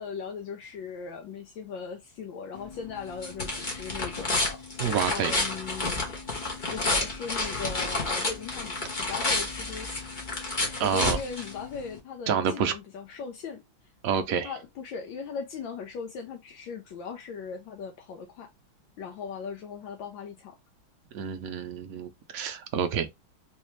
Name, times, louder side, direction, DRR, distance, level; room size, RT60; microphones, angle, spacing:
voice 1, 0.0-4.6 5.1-6.0 6.7-9.9 10.8-13.6 14.4-18.5 19.0-20.5, left 6 dB, 75° left, 1.3 m, -38 dB
sound 1, 2.5-12.0, left 2 dB, 30° left, 1.0 m, -31 dB
voice 2, 4.8-5.4 10.8-11.2 12.3-12.7 14.0-14.5 21.1-23.1, right 7 dB, 80° right, 0.7 m, -28 dB
3.4 x 3.2 x 3.0 m
omnidirectional pair, 2.2 m